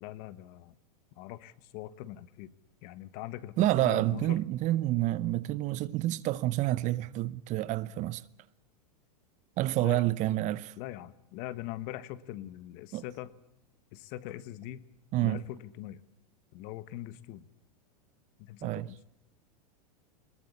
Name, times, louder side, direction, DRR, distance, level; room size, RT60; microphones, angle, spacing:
voice 1, 0.0-0.7 1.2-2.5 2.8-4.4 9.7-10.1 10.8-13.3 13.9-14.9 15.2-16.0 16.5-17.5 18.4-19.0, left 14 dB, 50° left, 1.5 m, -42 dB
voice 2, 3.6-8.2 9.6-10.7 12.9-13.0 15.1-15.4 18.6-18.9, right 15 dB, 40° right, 0.8 m, -28 dB
21.5 x 20.0 x 8.5 m
hypercardioid pair, 120°, 20 cm